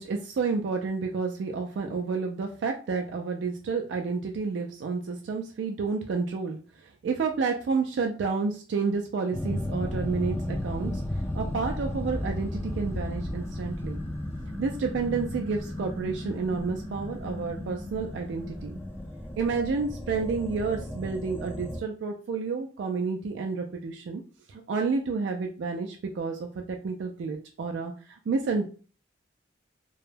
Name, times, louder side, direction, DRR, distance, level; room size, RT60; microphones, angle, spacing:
voice 1, 0.0-10.9 11.3-14.0 14.6-18.8 19.4-24.2 24.5-28.6, right 4 dB, 80° right, 2 dB, 0.3 m, -30 dB
sound 1, 9.3-21.8, left 1 dB, 10° left, 0.3 m, -34 dB
2.2 x 2.0 x 3.2 m, 0.39 s
head